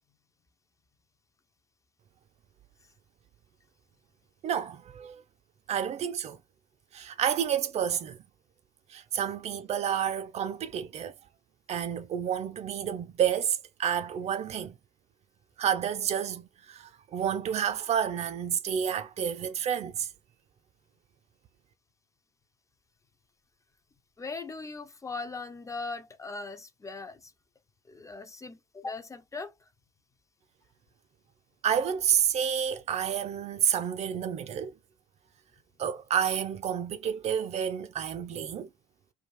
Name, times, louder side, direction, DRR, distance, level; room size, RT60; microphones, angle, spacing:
voice 1, 4.4-5.2 5.7-6.4 6.9-8.2 8.9-11.1 11.7-14.8 15.6-20.1 31.6-34.7 35.8-38.7, right 8 dB, 45° right, 0.4 m, -30 dB
voice 2, 24.2-27.3 27.9-29.5, left 3 dB, 20° left, 0.4 m, -39 dB
2.3 x 2.1 x 3.1 m
hypercardioid pair, 55°, 16 cm